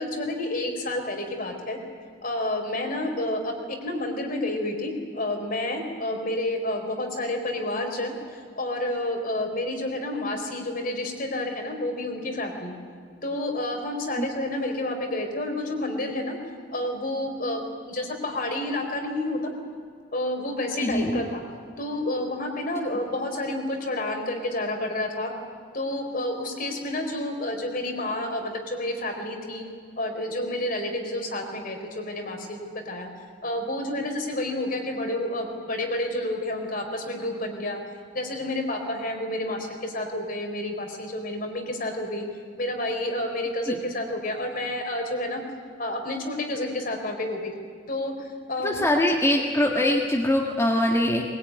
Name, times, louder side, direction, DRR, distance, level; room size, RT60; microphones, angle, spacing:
voice 1, 0.0-1.8 2.2-12.7 13.2-16.4 16.7-19.5 20.1-21.4 21.8-25.3 25.7-29.6 30.0-33.1 33.4-37.8 38.1-42.3 42.6-45.4 45.8-47.5 47.9-48.1 48.5-49.1, left 1 dB, 45° left, 4 dB, 4.2 m, -30 dB
voice 2, 20.8-21.2 43.7-43.8 48.6-51.2, left 1 dB, 15° left, -1 dB, 1.7 m, -23 dB
21.5 x 21.0 x 9.6 m, 2.1 s
head